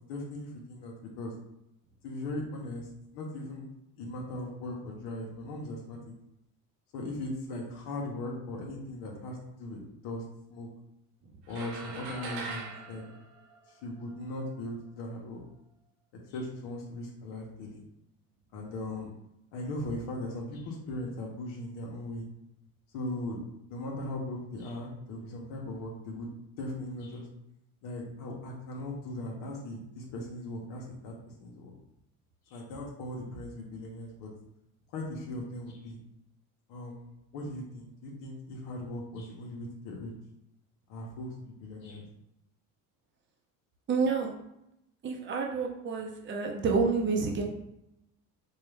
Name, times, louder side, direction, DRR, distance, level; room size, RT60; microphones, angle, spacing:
voice 1, 0.1-1.3 2.0-2.9 3.1-3.7 4.0-6.0 6.9-10.2 10.5-10.7 11.5-13.2 13.8-15.4 16.3-17.8 18.5-19.1 19.5-22.3 22.9-23.4 23.7-26.3 26.6-27.3 27.8-31.1 31.4-31.7 32.5-34.3 34.9-36.0 36.7-37.0 37.3-40.1 40.9-42.0, left 1 dB, 80° left, -1 dB, 1.1 m, -38 dB
sound 1, 11.5-14.1, right 4 dB, 75° right, 1.0 m, -41 dB
voice 2, 43.9-44.3 45.0-47.4, right 4 dB, 30° right, 1 dB, 0.7 m, -29 dB
4.5 x 2.3 x 3.3 m, 0.84 s
cardioid pair, 120°, 39 cm